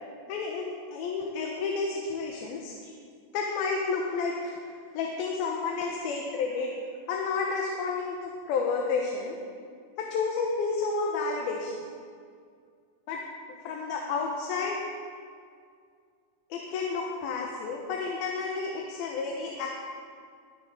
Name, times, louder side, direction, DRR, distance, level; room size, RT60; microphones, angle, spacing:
voice 1, 0.3-2.9 3.3-4.6 4.9-6.7 7.1-9.4 10.0-11.8 13.1-13.2 13.6-14.8 16.5-19.7, left 4 dB, 80° left, 0 dB, 2.9 m, -31 dB
21.5 x 9.7 x 3.8 m, 2.2 s
omnidirectional pair, 4.4 m